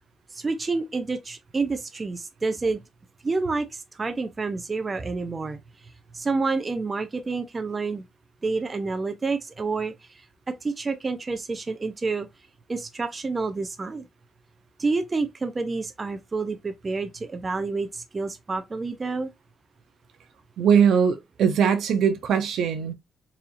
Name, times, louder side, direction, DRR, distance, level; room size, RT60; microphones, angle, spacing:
voice 1, 0.3-2.8 3.2-5.6 6.1-8.0 8.4-10.2 10.5-12.3 12.7-14.0 14.8-19.3, right 3 dB, 30° right, 0.6 m, -28 dB
voice 2, 20.6-22.9, right 7 dB, 75° right, 0.7 m, -21 dB
4.1 x 2.6 x 2.6 m
cardioid pair, 90°, 0 cm